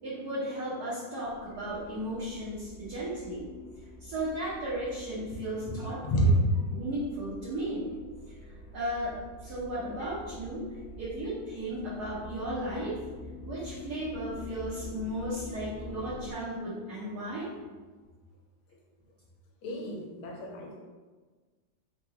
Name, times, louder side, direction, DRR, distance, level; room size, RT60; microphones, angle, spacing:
voice 1, 0.0-3.5 4.0-6.4 6.7-7.9 8.3-10.7 11.0-13.0 13.5-17.5, right 1 dB, 60° right, -9 dB, 1.2 m, -35 dB
sound 1, 1.2-16.3, left 1 dB, 70° left, 1.5 m, -47 dB
voice 2, 19.6-20.9, equal, 85° left, -1 dB, 1.5 m, -31 dB
3.8 x 2.2 x 2.8 m, 1.4 s
omnidirectional pair, 2.2 m